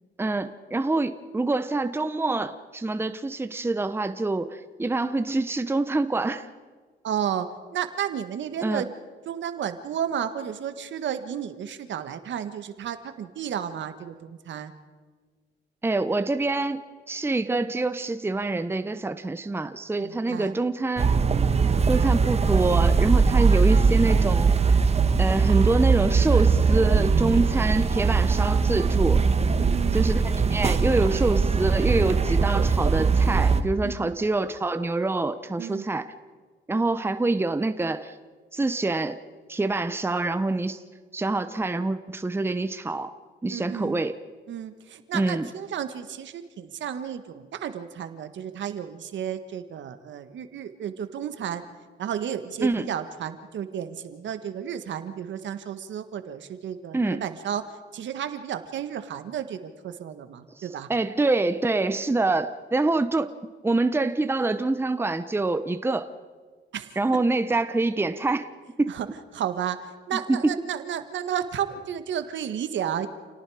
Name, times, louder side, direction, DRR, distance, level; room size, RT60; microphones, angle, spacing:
voice 1, 0.2-6.5 8.6-8.9 15.8-16.8 17.1-21.1 21.9-24.8 25.2-29.2 29.9-36.1 36.7-38.1 38.5-39.2 39.5-40.8 41.1-43.1 43.4-44.2 45.1-45.5 52.6-52.9 56.9-57.2 60.6-63.3 63.6-66.1 67.0-68.5 68.8-68.9 70.3-70.5, right 2 dB, 10° right, 10 dB, 0.9 m, -26 dB
voice 2, 7.0-7.5 7.7-8.9 9.2-14.7 20.0-20.5 29.6-30.0 33.8-34.1 35.6-35.8 43.5-44.0 44.5-51.6 52.0-57.6 57.9-60.9 66.7-66.9 68.9-69.1 69.3-73.1, right 9 dB, 70° right, 9 dB, 1.5 m, -32 dB
sound 1, 21.0-33.6, right 5 dB, 30° right, 1.3 m, -21 dB
29.0 x 18.0 x 4.9 m, 1.5 s
cardioid pair, 90°, 20 cm